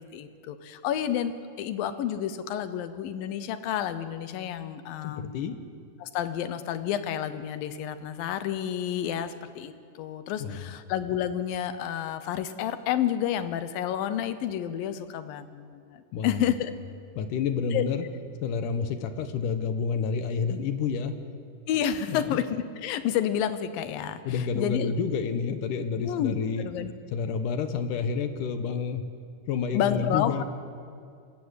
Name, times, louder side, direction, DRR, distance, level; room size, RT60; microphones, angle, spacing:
voice 1, 0.1-5.5 6.0-16.7 17.7-17.8 21.7-24.9 26.0-26.9 29.7-30.4, left 10 dB, 90° left, 11 dB, 2.7 m, -30 dB
voice 2, 5.0-5.5 10.4-10.7 16.1-16.5 17.2-18.0 18.4-21.1 22.1-22.4 24.3-26.6 27.1-29.0 29.5-30.4, left 6 dB, 75° left, 8 dB, 2.5 m, -29 dB
27.0 x 13.5 x 8.2 m, 2.4 s
omnidirectional pair, 3.9 m